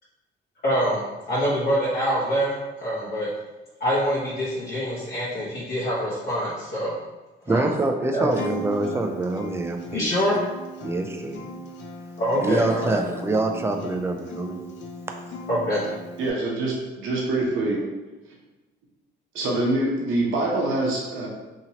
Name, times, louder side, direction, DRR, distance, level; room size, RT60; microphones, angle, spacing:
voice 1, 0.6-1.0 1.3-2.5 2.8-3.3 3.8-6.9 7.5-7.7 8.1-8.3 9.9-10.3 12.2-13.0 15.5-15.8, equal, 50° left, -9 dB, 1.0 m, -25 dB
voice 2, 7.5-10.1 10.8-11.4 12.4-14.6, right 2 dB, 15° right, 4 dB, 0.3 m, -25 dB
Acoustic guitar, 8.3-16.3, equal, 65° left, 0.5 m, -37 dB
voice 3, 16.2-17.8 19.3-21.3, right 2 dB, 80° right, -3 dB, 0.7 m, -25 dB
2.8 x 2.8 x 2.8 m, 1.1 s
cardioid pair, 90°, 20 cm